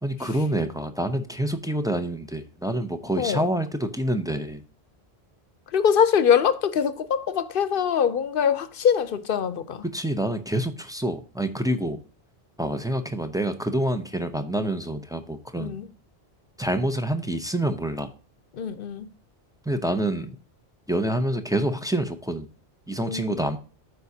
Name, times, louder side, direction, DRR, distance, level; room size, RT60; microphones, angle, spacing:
voice 1, 0.0-4.6 9.8-12.0 12.6-15.8 16.6-18.1 19.7-20.4 20.9-22.5 22.9-23.6, right 1 dB, 5° right, 0.5 m, -27 dB
voice 2, 3.2-3.5 5.7-9.8 15.5-15.9 18.5-19.1 23.0-23.5, left 7 dB, 60° left, 0.8 m, -23 dB
12.5 x 4.8 x 2.7 m
omnidirectional pair, 1.1 m